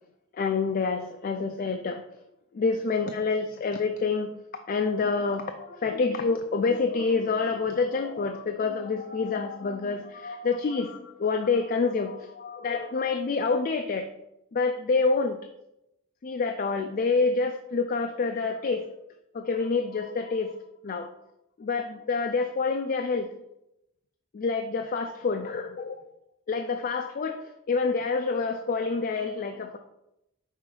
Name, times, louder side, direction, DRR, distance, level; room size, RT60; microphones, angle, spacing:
voice 1, 0.3-2.0 2.5-4.3 4.7-14.1 14.5-15.4 16.2-18.9 19.3-20.5 20.8-21.1 21.6-23.3 24.3-26.0 26.5-29.8, left 4 dB, 40° left, 6 dB, 0.3 m, -27 dB
5.5 x 3.8 x 4.7 m, 0.86 s
head